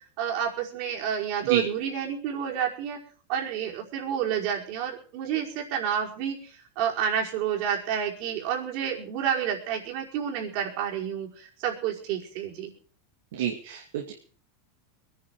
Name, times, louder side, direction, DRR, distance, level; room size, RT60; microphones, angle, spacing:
voice 1, 0.2-3.0 3.3-12.7, right 8 dB, 60° right, 0 dB, 5.2 m, -29 dB
voice 2, 13.3-14.2, right 9 dB, 75° right, 3 dB, 2.4 m, -29 dB
23.0 x 10.5 x 4.8 m, 0.41 s
hypercardioid pair, 105°, 0 cm